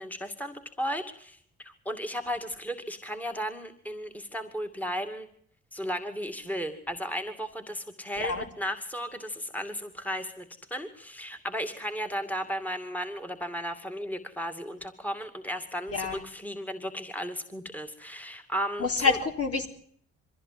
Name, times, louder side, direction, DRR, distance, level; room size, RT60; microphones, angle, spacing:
voice 1, 0.0-5.3 5.7-19.2, equal, 5° left, 8 dB, 2.4 m, -35 dB
voice 2, 18.8-19.7, left 4 dB, 50° left, 5 dB, 3.8 m, -27 dB
23.5 x 15.0 x 7.8 m, 0.62 s
cardioid pair, 90°, 30 cm